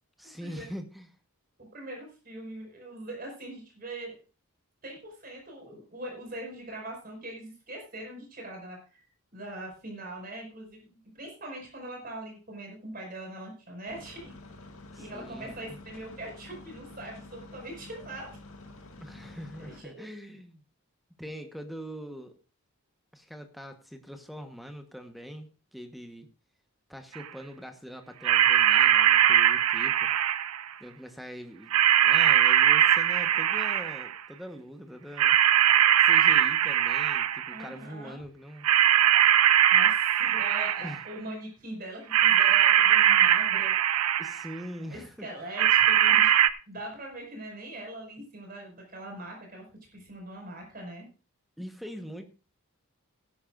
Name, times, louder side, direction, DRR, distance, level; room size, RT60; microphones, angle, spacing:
voice 1, 0.2-1.1 14.9-15.8 19.0-20.6 21.2-22.4 23.1-26.3 26.9-30.1 30.8-31.7 32.0-35.4 36.0-38.7 40.8-41.0 44.2-45.5 51.6-52.3, equal, ahead, 6 dB, 1.2 m, -43 dB
voice 2, 1.6-4.2 4.8-9.0 9.3-14.3 15.0-18.4 19.6-20.1 37.5-38.2 39.7-44.1 44.9-46.4 46.7-49.6 49.9-51.1, right 1 dB, 40° right, 1 dB, 5.5 m, -42 dB
sound 1, 13.9-19.8, left 2 dB, 75° left, 1.9 m, -48 dB
sound 2, 27.2-27.3 28.2-30.7 31.7-34.2 35.2-37.6 38.6-41.1 42.1-44.5 45.6-46.5, right 10 dB, 85° right, 0.6 m, -21 dB
16.5 x 11.0 x 2.6 m, 0.34 s
head